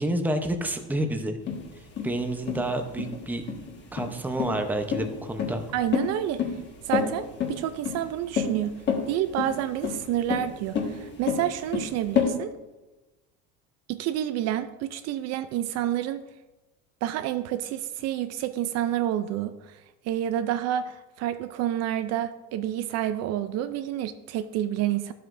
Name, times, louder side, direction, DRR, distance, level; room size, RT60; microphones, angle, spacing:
voice 1, 0.0-1.4 1.8-3.4 3.9-5.6, right 1 dB, 5° right, 5 dB, 0.7 m, -29 dB
sound 1, 1.5-12.3, left 7 dB, 35° left, 1.6 m, -29 dB
voice 2, 5.7-6.6 6.8-8.8 9.1-12.5 13.9-16.2 17.0-25.1, right 12 dB, 55° right, 11 dB, 0.5 m, -29 dB
12.0 x 7.7 x 2.6 m, 1.1 s
cardioid pair, 135°, 31 cm